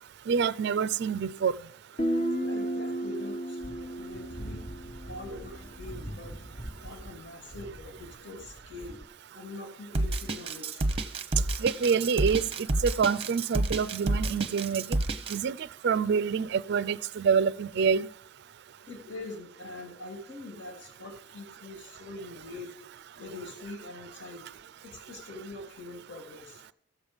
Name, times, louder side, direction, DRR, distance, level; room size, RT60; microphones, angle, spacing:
voice 1, 0.3-1.5 11.6-12.5 12.8-14.9 15.3-18.1, right 6 dB, 55° right, 0.4 m, -26 dB
Guitar, 2.0-5.6, right 1 dB, 40° left, 1.1 m, -33 dB
voice 2, 2.4-4.6 5.0-6.4 6.8-9.0 9.3-10.9 18.8-22.8 23.2-24.5 24.8-26.7, left 2 dB, 65° left, 2.4 m, -44 dB
sound 1, 3.6-9.0, equal, 20° left, 1.1 m, -44 dB
Drum kit, 9.9-15.4, right 2 dB, 30° right, 0.7 m, -29 dB
15.0 x 7.2 x 5.1 m
head